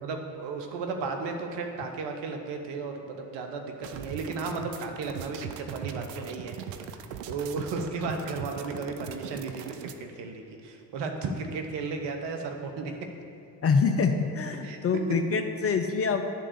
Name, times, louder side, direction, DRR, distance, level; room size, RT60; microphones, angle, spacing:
voice 1, 0.0-12.9 14.6-14.8, right 4 dB, 60° right, 4 dB, 1.1 m, -34 dB
sound 1, 3.8-9.9, right 8 dB, 80° right, 0.6 m, -40 dB
voice 2, 13.6-16.2, left 5 dB, 30° left, 6 dB, 0.5 m, -25 dB
9.0 x 3.7 x 6.6 m, 2.5 s
hypercardioid pair, 55°, 48 cm